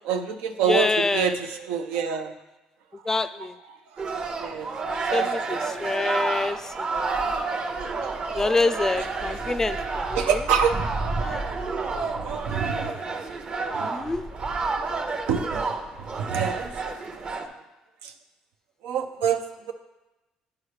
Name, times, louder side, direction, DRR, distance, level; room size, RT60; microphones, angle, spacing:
voice 1, 0.1-2.3 3.1-3.2 4.4-4.7 5.1-5.6 10.1-10.7 12.2-12.9 13.7-13.9 15.3-15.6 16.2-16.7 18.8-19.4, right 7 dB, 85° right, 6 dB, 0.6 m, -26 dB
voice 2, 0.7-1.4 3.1-3.5 5.1-7.3 8.3-10.4 11.2-11.4 13.8-14.3, left 3 dB, 20° left, 13 dB, 0.4 m, -26 dB
sound 1, 4.0-17.5, right 4 dB, 40° right, 0.8 m, -30 dB
9.8 x 4.7 x 3.2 m, 1.1 s
supercardioid pair, 85°, 3 cm